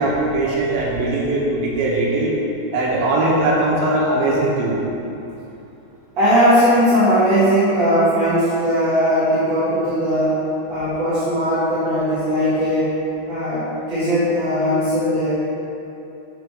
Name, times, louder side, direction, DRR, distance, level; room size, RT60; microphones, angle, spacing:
voice 1, 0.0-2.3 2.7-4.8, right 2 dB, 70° right, -4 dB, 2.6 m, -20 dB
voice 2, 6.1-10.4 10.7-12.9 13.3-15.3, equal, 40° right, -13 dB, 1.7 m, -18 dB
8.0 x 6.4 x 5.0 m, 2.9 s
omnidirectional pair, 4.8 m